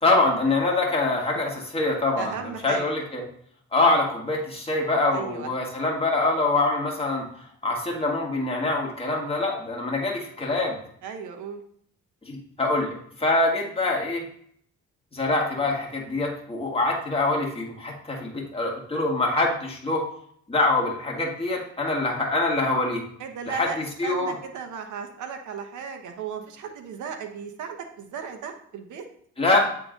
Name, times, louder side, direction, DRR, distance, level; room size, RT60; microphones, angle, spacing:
voice 1, 0.0-3.2 3.7-7.3 7.6-10.8 12.3-14.2 15.1-20.0 20.5-23.0 23.4-24.3 29.4-29.7, left 2 dB, 20° left, -1 dB, 1.8 m, -24 dB
voice 2, 2.2-2.9 5.1-5.5 11.0-11.6 23.2-23.8 24.0-29.0, right 6 dB, 75° right, 6 dB, 1.0 m, -35 dB
7.9 x 3.8 x 3.8 m, 0.65 s
cardioid pair, 90°, 30 cm